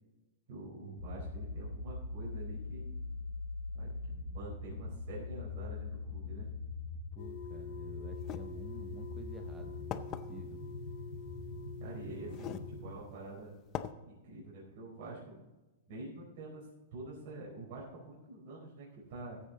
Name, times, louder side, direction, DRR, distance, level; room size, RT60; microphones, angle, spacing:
voice 1, 0.5-2.9 3.7-6.5 11.8-13.5 14.0-15.4 15.9-19.4, right 2 dB, 45° right, -6 dB, 4.4 m, -47 dB
sound 1, 1.0-13.0, left 3 dB, 70° left, 3.6 m, -42 dB
voice 2, 7.1-10.6 15.3-15.4, right 3 dB, 10° right, 4 dB, 0.7 m, -52 dB
sound 2, 7.2-12.8, left 2 dB, 50° left, 1.5 m, -48 dB
sound 3, 8.2-8.4 9.2-9.3 9.9-10.2 11.5-11.6 12.3-12.7 13.1-13.2 13.7-13.9, left 11 dB, 25° left, 0.5 m, -39 dB
14.5 x 8.6 x 4.0 m, 1.1 s
supercardioid pair, 170°, 0 cm